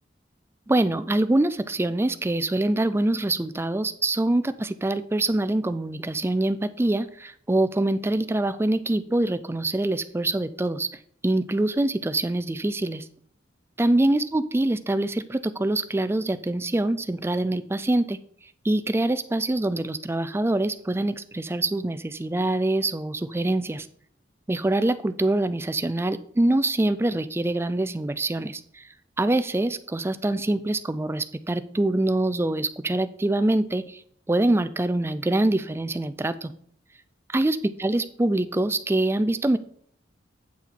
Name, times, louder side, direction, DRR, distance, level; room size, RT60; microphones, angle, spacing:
voice 1, 0.7-10.9 11.2-13.0 13.8-18.2 18.6-23.9 24.5-28.8 29.2-34.0 34.3-36.5 37.3-39.6, right 2 dB, 15° right, 13 dB, 0.4 m, -24 dB
8.5 x 5.8 x 4.5 m, 0.63 s
head